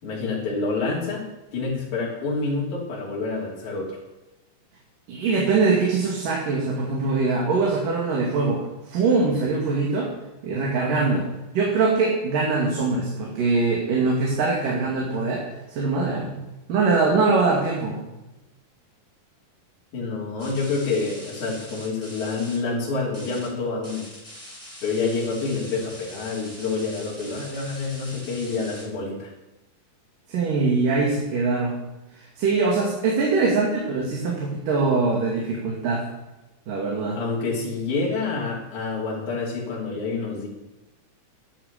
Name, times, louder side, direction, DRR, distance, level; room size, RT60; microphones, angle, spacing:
voice 1, 0.0-4.0 19.9-24.1 24.8-29.3 37.1-40.5, left 4 dB, 60° left, -4 dB, 4.5 m, -28 dB
voice 2, 5.1-10.1 10.4-11.3 11.5-15.4 15.7-16.3 16.7-18.0 30.3-31.7 32.2-36.1 36.7-37.2, right 4 dB, 70° right, -2 dB, 3.9 m, -22 dB
sound 1, 20.4-22.6 23.1-23.5 23.8-28.8, equal, 5° right, 5.0 m, -43 dB
12.5 x 10.5 x 6.9 m, 1.0 s
omnidirectional pair, 4.0 m